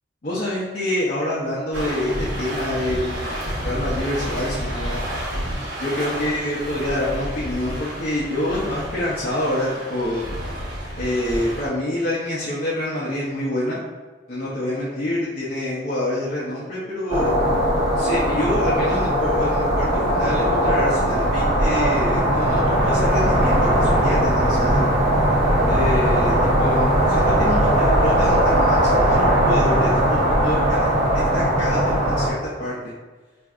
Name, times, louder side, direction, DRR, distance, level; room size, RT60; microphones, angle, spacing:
voice 1, 0.2-5.0 5.8-10.3 11.0-13.8 14.3-17.3 18.0-24.8 25.7-32.8, left 1 dB, 50° left, -7 dB, 0.6 m, -26 dB
sound 1, 1.7-11.7, equal, 65° right, 0.9 m, -30 dB
sound 2, 17.1-32.3, right 1 dB, 40° right, 0.7 m, -19 dB
4.3 x 2.6 x 2.4 m, 1.3 s
head